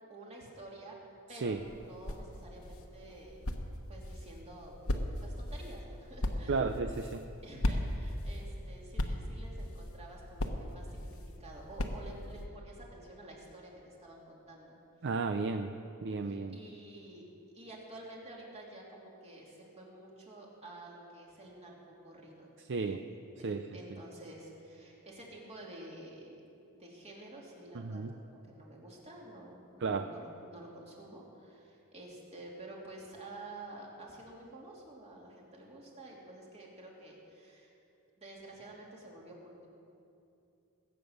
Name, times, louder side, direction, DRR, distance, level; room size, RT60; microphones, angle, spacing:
voice 1, 0.1-1.0 1.3-3.5 3.9-4.8 5.2-6.6 7.4-14.8 16.2-17.2 17.5-21.8 22.0-22.5 22.8-23.0 23.4-26.4 26.7-37.8 38.2-39.7, right 1 dB, 30° right, -3 dB, 2.8 m, -50 dB
sound 1, 1.5-12.4, left 1 dB, 70° left, 1.1 m, -38 dB
voice 2, 6.5-7.2 15.0-15.7 16.0-16.6 22.7-23.0 23.4-23.7 27.7-28.1 29.8-30.1, right 4 dB, 55° right, 7 dB, 0.5 m, -33 dB
21.0 x 8.8 x 6.5 m, 2.7 s
head